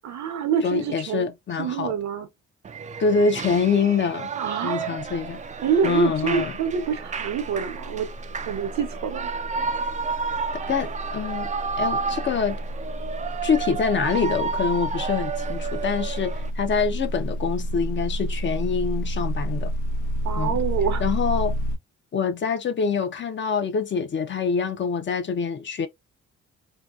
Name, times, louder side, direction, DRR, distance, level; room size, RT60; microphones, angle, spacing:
voice 1, 0.0-1.3 1.6-2.3 4.4-4.9 5.6-8.1 8.5-9.3 20.2-21.0, right 7 dB, 65° right, 0.8 m, -26 dB
voice 2, 0.6-2.0 3.0-4.3 4.6-5.4 5.8-6.5 10.7-11.5 11.8-12.6 13.4-19.7 20.3-20.6 21.0-21.5 22.1-25.9, left 5 dB, 40° left, 0.5 m, -25 dB
Shout / Cheering, 2.6-16.5, right 5 dB, 25° right, 0.4 m, -31 dB
sound 1, 5.3-5.4 5.6-21.8, equal, 80° left, 0.7 m, -30 dB
2.8 x 2.2 x 2.3 m
cardioid pair, 90°, 30 cm